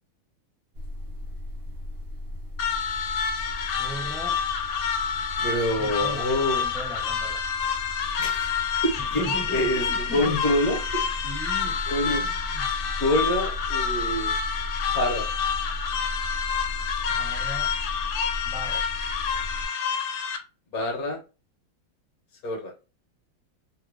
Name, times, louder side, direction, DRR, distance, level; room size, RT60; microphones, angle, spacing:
sound 1, 0.8-19.7, left 1 dB, 60° right, 0.6 m, -37 dB
sound 2, 2.6-20.4, left 7 dB, 75° left, 1.3 m, -28 dB
voice 1, 3.7-4.4 5.8-6.3 6.5-7.4 8.9-10.4 11.2-11.8 12.0-12.7 17.1-17.7 18.4-18.8, equal, 5° right, 0.7 m, -38 dB
voice 2, 5.4-6.6 8.2-11.1 11.9-12.2 13.0-14.3 14.9-15.3 20.7-21.2 22.4-22.7, left 1 dB, 55° left, 1.3 m, -26 dB
3.2 x 2.2 x 3.4 m
omnidirectional pair, 2.1 m